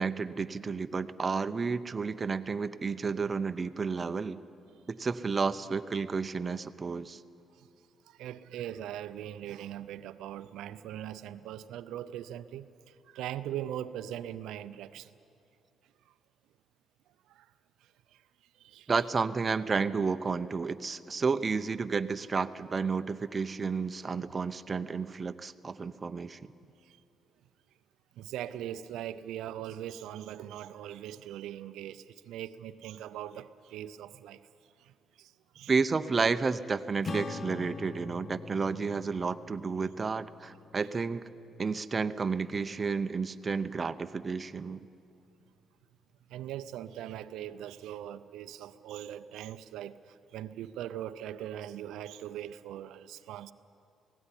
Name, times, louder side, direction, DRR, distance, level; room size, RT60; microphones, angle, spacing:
voice 1, 0.0-4.4 4.9-7.2 18.9-26.4 35.7-41.2 41.6-44.9, right 4 dB, 35° right, 0.7 m, -31 dB
voice 2, 8.0-15.1 17.3-17.5 17.8-18.2 18.6-18.9 26.8-27.0 28.2-34.4 34.8-35.7 46.3-53.5, right 11 dB, 90° right, 0.5 m, -41 dB
Acoustic guitar / Strum, 37.0-41.8, left 4 dB, 40° left, 0.7 m, -43 dB
17.0 x 16.5 x 10.0 m
cardioid pair, 90°, 0 cm